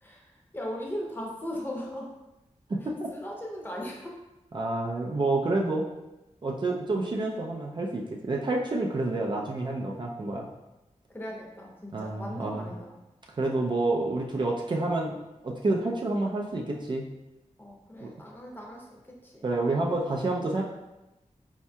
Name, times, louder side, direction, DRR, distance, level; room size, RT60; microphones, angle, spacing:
voice 1, 0.0-2.1 3.1-4.2 11.1-12.9 17.6-19.4, equal, 15° left, -2 dB, 0.7 m, -38 dB
voice 2, 2.7-3.1 4.5-5.8 6.4-10.5 11.9-12.7 13.4-15.2 15.4-17.0 18.0-18.1 19.4-20.6, right 2 dB, 40° right, -2 dB, 0.3 m, -28 dB
4.3 x 2.7 x 2.2 m, 0.99 s
wide cardioid pair, 105°, 13 cm